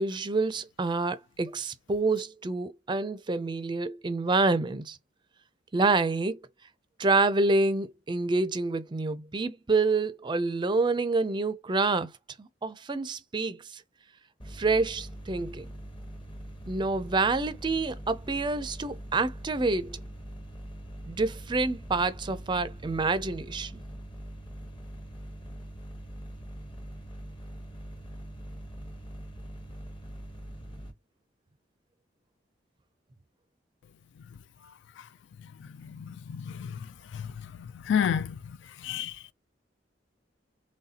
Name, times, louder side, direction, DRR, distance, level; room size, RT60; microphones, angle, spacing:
voice 1, 0.0-5.0 5.7-6.4 7.0-12.1 12.4-13.8 14.5-15.7 16.7-20.0 21.1-23.8, right 3 dB, 25° right, 0.4 m, -27 dB
sound 1, 14.4-30.9, right 1 dB, 30° left, 1.0 m, -43 dB
voice 2, 35.8-36.7 37.1-37.2 37.9-38.4 38.8-39.1, left 8 dB, 75° left, 0.3 m, -29 dB
4.0 x 3.1 x 2.7 m
head